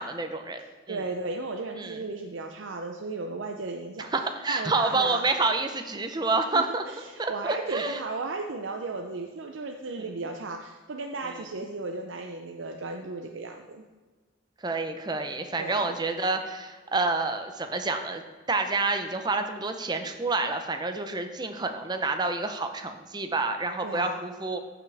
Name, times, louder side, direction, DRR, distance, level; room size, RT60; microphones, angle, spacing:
voice 1, 0.0-1.0 1.8-2.0 4.1-6.8 7.2-8.0 9.9-10.0 14.6-18.2 18.5-24.6, right 3 dB, 20° right, 6 dB, 0.7 m, -28 dB
voice 2, 0.9-4.1 4.4-5.3 6.5-13.8 15.6-16.0 23.8-24.2, right 3 dB, 75° right, 3 dB, 0.6 m, -35 dB
14.5 x 5.9 x 3.4 m, 1.3 s
head